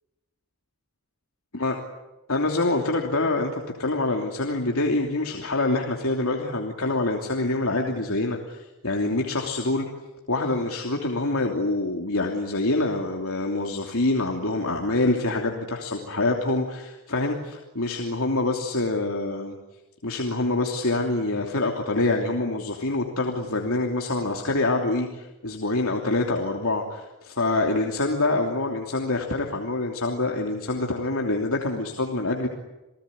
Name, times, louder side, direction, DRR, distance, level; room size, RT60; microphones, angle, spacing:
voice 1, 2.3-9.9 10.3-19.6 20.0-32.5, left 2 dB, 75° left, 1 dB, 3.1 m, -26 dB
29.0 x 19.5 x 9.8 m, 1.1 s
head